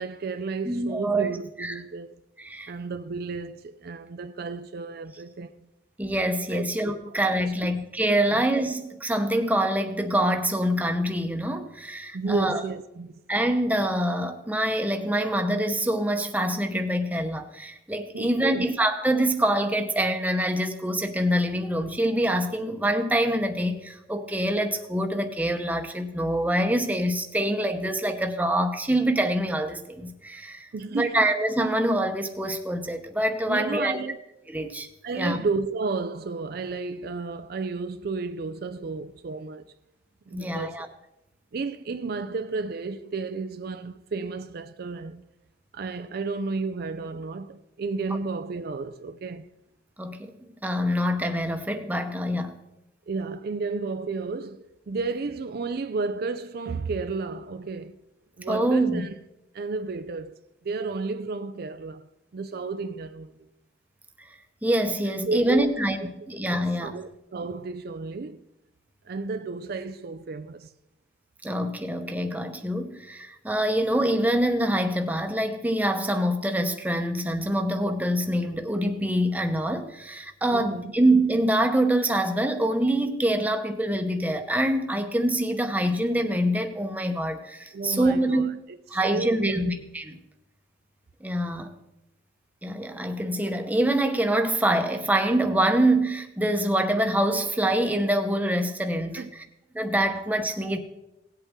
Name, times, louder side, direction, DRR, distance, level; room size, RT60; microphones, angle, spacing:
voice 1, 0.0-2.2 2.7-5.5 6.5-6.6 7.1-7.2 7.6-7.7 8.2-8.4 12.1-13.1 18.1-18.7 30.7-31.2 33.5-34.2 35.0-39.7 40.3-40.9 41.5-45.2 45.7-49.5 53.1-58.0 58.4-59.2 59.5-62.1 62.3-63.5 65.1-65.7 66.8-68.4 69.1-70.7 80.5-80.9 87.7-89.8 99.2-99.3, right 4 dB, 60° right, 0.4 m, -32 dB
voice 2, 0.7-1.3 1.6-1.8 2.4-2.7 6.0-12.6 13.3-34.0 34.5-34.9 35.2-35.4 40.3-40.9 50.0-50.3 50.6-52.5 58.5-59.1 64.6-66.0 66.3-67.0 71.4-88.6 88.9-90.0 91.2-91.7 92.6-99.4 99.7-100.8, right 1 dB, 10° right, 0.9 m, -25 dB
18.0 x 8.1 x 3.6 m
head